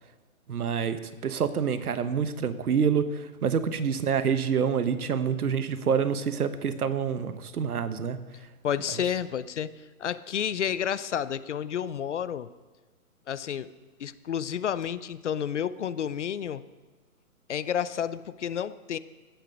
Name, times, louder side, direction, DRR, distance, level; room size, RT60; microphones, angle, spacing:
voice 1, 0.5-8.2, right 7 dB, 85° right, 12 dB, 1.2 m, -27 dB
voice 2, 8.6-12.5 13.3-13.7 14.0-16.6 17.5-19.0, left 9 dB, 55° left, 17 dB, 0.6 m, -30 dB
16.0 x 8.2 x 5.2 m, 1.2 s
hypercardioid pair, 165°, 43 cm